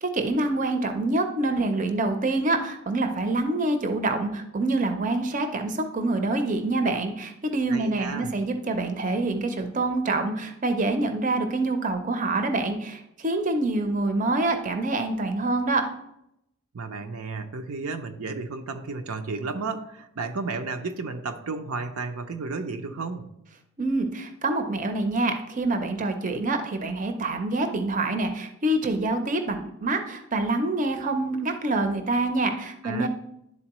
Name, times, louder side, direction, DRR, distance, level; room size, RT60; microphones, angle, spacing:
voice 1, 0.0-15.9 23.8-33.1, right 2 dB, 35° right, 6 dB, 0.5 m, -26 dB
voice 2, 7.7-8.3 16.7-23.3 32.8-33.1, right 4 dB, 75° right, 6 dB, 0.6 m, -33 dB
11.0 x 4.0 x 3.0 m, 0.80 s
head